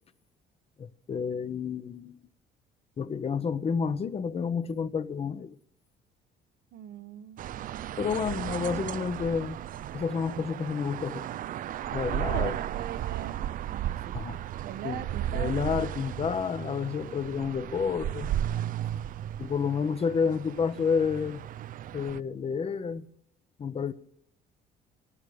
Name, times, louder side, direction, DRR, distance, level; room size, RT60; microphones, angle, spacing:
voice 1, 0.8-2.3 3.0-5.6 8.0-9.6 9.9-11.3 11.9-12.6 14.1-14.4 14.8-18.3 19.4-21.4 21.9-23.0 23.6-23.9, left 6 dB, 35° left, 1.0 m, -30 dB
voice 2, 6.7-7.5 12.0-13.4 13.7-14.2 14.6-15.6, right 11 dB, 70° right, 1.2 m, -41 dB
sound 1, 7.4-22.2, right 12 dB, 55° right, 0.5 m, -35 dB
18.5 x 14.5 x 5.0 m
cardioid pair, 110°, 17 cm